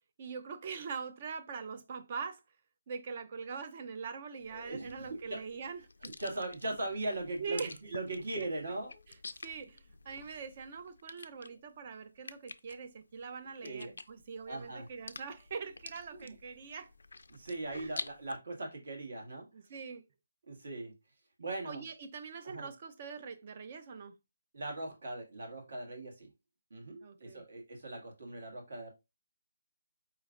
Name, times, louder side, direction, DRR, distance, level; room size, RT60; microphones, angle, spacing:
voice 1, 0.2-2.4 2.9-5.8 7.4-7.7 9.4-16.9 17.7-17.9 19.5-20.0 21.6-24.1 27.0-27.4, right 5 dB, 30° right, 0.5 m, -43 dB
sound 1, 4.4-18.4, left 3 dB, 85° left, 0.4 m, -50 dB
voice 2, 4.5-5.4 6.0-9.0 13.6-13.9 14.5-14.9 16.1-16.3 17.3-19.5 20.5-20.9 21.4-21.9 22.4-22.7 24.5-26.3 26.7-28.9, right 2 dB, 55° right, 1.7 m, -40 dB
4.7 x 3.2 x 2.5 m
hypercardioid pair, 175°, 0 cm